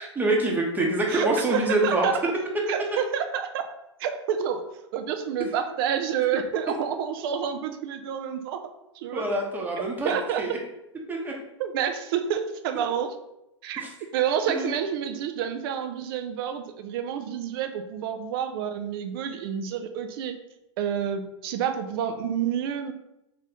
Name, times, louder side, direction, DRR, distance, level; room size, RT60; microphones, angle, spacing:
voice 1, 0.0-2.1 9.1-10.6 11.1-11.3 13.8-13.9 14.5-14.7, right 2 dB, 10° right, -1 dB, 0.9 m, -26 dB
voice 2, 1.1-2.1 2.7-3.6 4.0-4.6 4.9-8.6 8.9-9.3 10.0-10.4 11.6-13.1 13.6-13.8 14.1-20.4 20.8-22.9, right 8 dB, 50° right, 7 dB, 0.5 m, -28 dB
3.3 x 2.7 x 4.1 m, 0.86 s
figure-of-eight pair, 95°, 16 cm